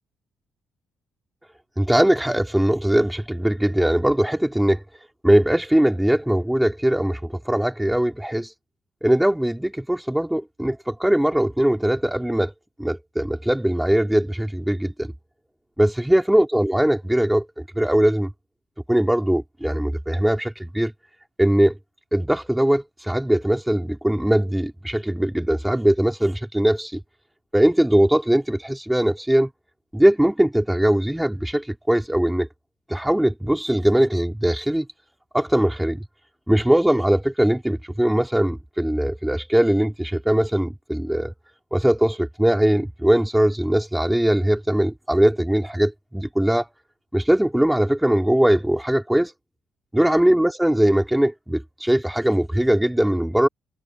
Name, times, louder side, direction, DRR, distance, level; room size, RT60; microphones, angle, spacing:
voice 1, 1.8-4.8 5.2-8.5 9.0-12.5 12.8-15.1 15.8-18.3 18.9-20.9 21.4-21.8 22.1-27.0 27.5-29.5 29.9-32.5 32.9-34.9 35.3-36.0 36.5-41.3 41.7-46.7 47.1-49.3 49.9-53.5, right 1 dB, 5° right, 4.2 m, -20 dB
cardioid pair, 90°, 0 cm